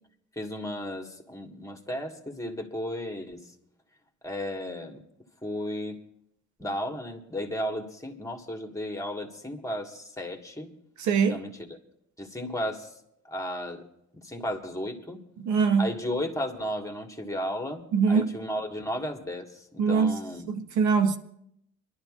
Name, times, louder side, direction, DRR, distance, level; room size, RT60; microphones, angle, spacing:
voice 1, 0.3-3.5 4.2-5.0 5.4-6.0 6.6-10.7 11.3-11.7 12.2-12.9 13.2-13.8 14.1-15.2 15.8-20.5, equal, 10° left, 1.6 m, -34 dB
voice 2, 11.0-11.4 15.4-15.9 17.9-18.3 19.8-20.2 20.5-21.2, right 5 dB, 70° right, 0.9 m, -23 dB
25.5 x 12.0 x 2.5 m
cardioid pair, 90°, 30 cm